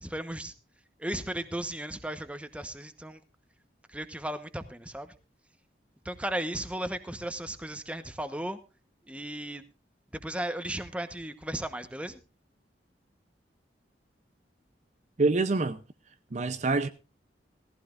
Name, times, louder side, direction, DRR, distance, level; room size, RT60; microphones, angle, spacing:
voice 1, 0.0-0.5 1.0-3.2 3.9-5.1 6.0-8.6 9.1-9.6 10.1-12.2, right 1 dB, 5° right, 1.0 m, -35 dB
voice 2, 15.2-15.8 16.3-16.9, right 3 dB, 40° right, 0.6 m, -26 dB
17.5 x 15.0 x 2.5 m
head